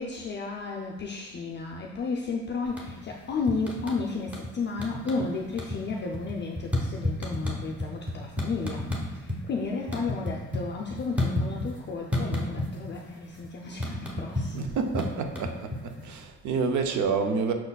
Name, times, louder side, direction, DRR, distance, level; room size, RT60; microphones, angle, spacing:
voice 1, 0.0-8.9 9.1-14.8, left 4 dB, 35° left, 0 dB, 0.4 m, -33 dB
sound 1, 2.6-3.1 3.5-4.5 4.8-5.3 5.5-9.4 9.7-11.8 12.1-13.0 13.2-16.1, left 1 dB, 5° right, 0.9 m, -31 dB
voice 2, 14.5-17.5, right 5 dB, 70° right, 5 dB, 0.6 m, -28 dB
5.8 x 4.0 x 2.3 m, 1.1 s
cardioid pair, 90°, 30 cm